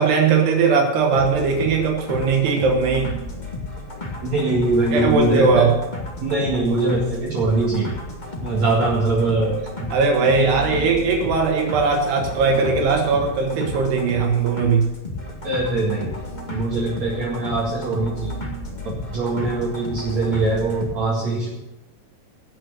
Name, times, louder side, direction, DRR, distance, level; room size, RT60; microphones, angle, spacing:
voice 1, 0.0-3.2 4.9-5.8 9.9-14.9, right 4 dB, 75° right, 1 dB, 3.7 m, -19 dB
sound 1, 1.1-20.9, left 1 dB, 30° left, 0.8 m, -33 dB
voice 2, 4.2-5.7 6.2-8.0 8.4-9.9 10.4-10.6 15.4-16.1 16.5-18.3 18.8-21.5, right 2 dB, 50° right, -4 dB, 2.9 m, -22 dB
19.0 x 6.7 x 6.6 m, 0.95 s
omnidirectional pair, 4.8 m